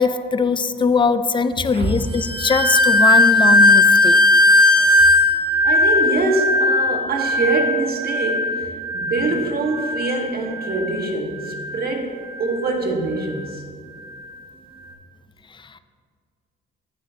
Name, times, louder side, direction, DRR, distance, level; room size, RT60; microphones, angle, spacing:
voice 1, 0.0-4.2 15.5-15.8, left 5 dB, 25° left, 12 dB, 0.4 m, -21 dB
sound 1, 2.1-11.1 11.4-11.9 12.4-12.6, left 1 dB, 25° right, 1.8 m, -17 dB
voice 2, 5.6-13.6, right 3 dB, 50° right, 2 dB, 1.5 m, -24 dB
14.5 x 6.9 x 2.9 m, 2.1 s
cardioid pair, 90°, 20 cm